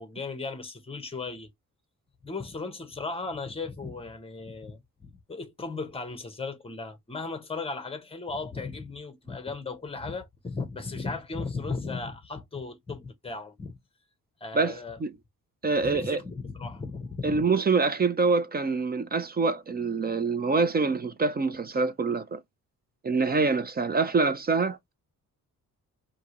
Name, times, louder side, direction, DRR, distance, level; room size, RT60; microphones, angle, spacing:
voice 1, 0.0-1.5 2.2-13.8 14.4-15.0 15.6-17.4, left 4 dB, 15° left, 1.0 m, -36 dB
voice 2, 14.5-15.1 15.6-16.2 17.2-22.4 23.0-24.8, right 4 dB, 30° right, 0.5 m, -25 dB
4.8 x 2.8 x 2.9 m
wide cardioid pair, 150°, 33 cm